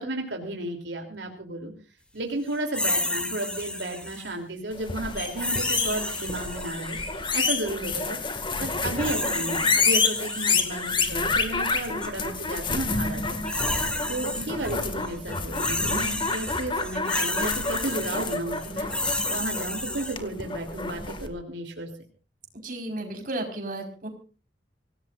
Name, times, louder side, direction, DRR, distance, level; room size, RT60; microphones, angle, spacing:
voice 1, 0.0-1.7 2.1-7.0 7.3-13.5 14.1-18.9 19.3-21.9, right 1 dB, 85° right, 2 dB, 3.2 m, -33 dB
sound 1, 2.7-4.3 5.4-7.2 8.7-11.1 11.8-12.1 13.1-14.7 15.0-20.2, left 1 dB, 5° left, 2.6 m, -31 dB
sound 2, 4.8-21.3, left 4 dB, 30° left, 2.0 m, -29 dB
voice 2, 22.6-24.1, right 1 dB, 50° right, 3 dB, 4.9 m, -33 dB
25.5 x 17.5 x 2.6 m, 0.37 s
head